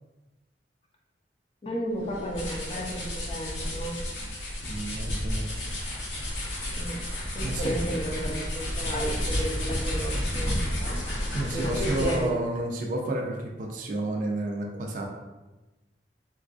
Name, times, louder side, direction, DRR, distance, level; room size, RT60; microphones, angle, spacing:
voice 1, 1.6-4.0 6.7-7.0 7.3-11.0 11.4-12.3, right 1 dB, 30° left, -1 dB, 0.5 m, -33 dB
sound 1, 2.0-12.4, left 1 dB, 90° left, 0.9 m, -31 dB
voice 2, 4.7-5.5 7.4-7.7 11.3-15.1, right 1 dB, 45° right, 0 dB, 0.4 m, -31 dB
3.8 x 2.3 x 2.4 m, 1.1 s
head